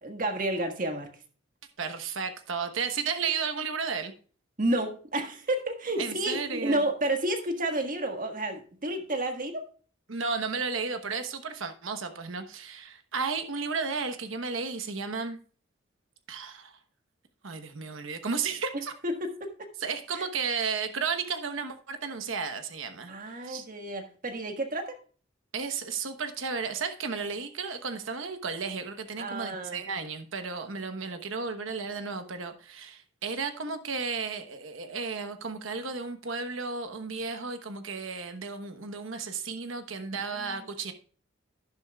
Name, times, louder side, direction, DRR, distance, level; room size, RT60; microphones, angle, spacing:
voice 1, 0.0-1.1 4.6-9.6 19.0-19.7 20.2-20.3 23.1-25.0 29.2-29.8 40.3-40.6, right 1 dB, 45° right, 1.5 m, -31 dB
voice 2, 1.8-4.1 6.0-6.8 10.1-15.4 16.3-16.8 17.4-18.9 19.8-23.7 25.5-40.9, right 5 dB, 80° right, 1.1 m, -33 dB
11.5 x 10.5 x 2.3 m
head